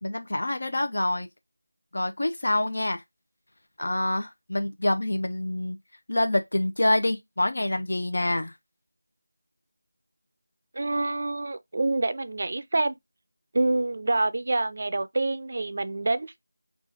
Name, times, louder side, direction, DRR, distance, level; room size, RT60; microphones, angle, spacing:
voice 1, 0.0-1.3 1.9-3.0 3.8-5.8 6.1-8.5, left 1 dB, 55° left, 0.7 m, -26 dB
voice 2, 10.7-13.0 13.5-16.4, right 2 dB, 35° right, 0.4 m, -27 dB
4.8 x 2.4 x 4.0 m
figure-of-eight pair, 175°, 0 cm